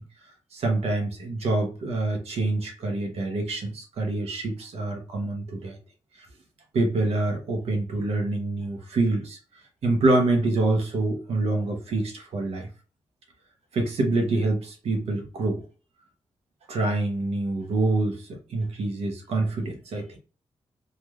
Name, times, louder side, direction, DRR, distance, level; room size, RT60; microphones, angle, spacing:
voice 1, 0.5-5.8 6.7-9.4 9.8-12.7 13.7-15.6 16.7-20.1, right 2 dB, 80° right, 3 dB, 0.9 m, -26 dB
3.2 x 2.5 x 2.3 m, 0.35 s
cardioid pair, 100°, 10 cm